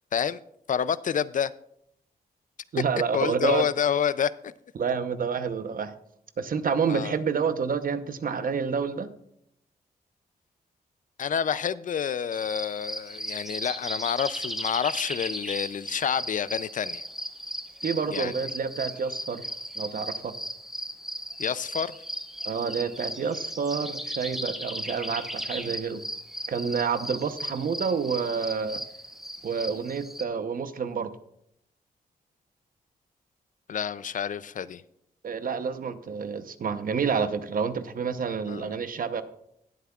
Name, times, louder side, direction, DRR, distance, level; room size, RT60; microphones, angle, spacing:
voice 1, 0.7-1.5 3.1-4.5 6.9-7.2 11.2-17.0 18.1-18.3 21.4-21.9 33.7-34.8 38.5-38.7, left 8 dB, 55° left, 0.4 m, -28 dB
voice 2, 2.7-3.7 4.8-5.9 6.4-9.1 17.8-19.5 19.8-20.3 22.4-26.0 26.5-28.8 29.4-31.1 35.2-39.2, right 6 dB, 60° right, 0.8 m, -28 dB
sound 1, 12.3-30.2, equal, ahead, 0.9 m, -36 dB
19.0 x 8.0 x 2.4 m
cardioid pair, 80°, 16 cm